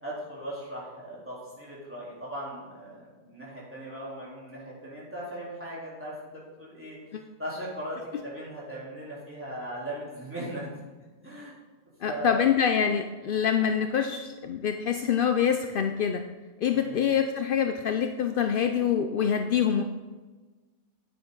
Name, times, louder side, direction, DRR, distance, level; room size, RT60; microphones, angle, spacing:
voice 1, 0.0-7.0 7.4-10.7 11.2-11.6 12.0-12.5 16.7-17.0, right 1 dB, 10° right, -8 dB, 3.6 m, -38 dB
voice 2, 12.0-16.2 16.6-19.8, left 8 dB, 75° left, 6 dB, 0.5 m, -25 dB
9.5 x 9.2 x 3.9 m, 1.3 s
omnidirectional pair, 1.5 m